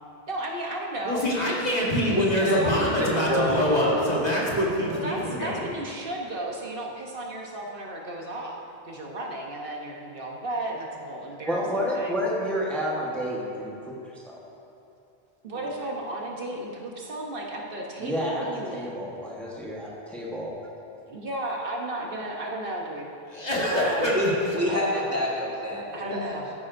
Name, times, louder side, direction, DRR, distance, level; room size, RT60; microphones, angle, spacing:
voice 1, 0.3-3.5 4.9-12.2 15.4-19.0 21.1-23.1 23.7-24.2 24.7-25.2 25.9-26.5, right 1 dB, 60° right, -1 dB, 1.1 m, -34 dB
voice 2, 1.0-5.7 23.3-24.3, equal, 40° left, -5 dB, 1.6 m, -25 dB
voice 3, 2.2-4.1 24.1-26.3, left 1 dB, 15° right, -5 dB, 1.6 m, -27 dB
voice 4, 11.5-14.4 15.5-15.7 18.0-20.6, equal, ahead, -4 dB, 1.1 m, -30 dB
13.5 x 9.4 x 2.6 m, 2.8 s
omnidirectional pair, 1.0 m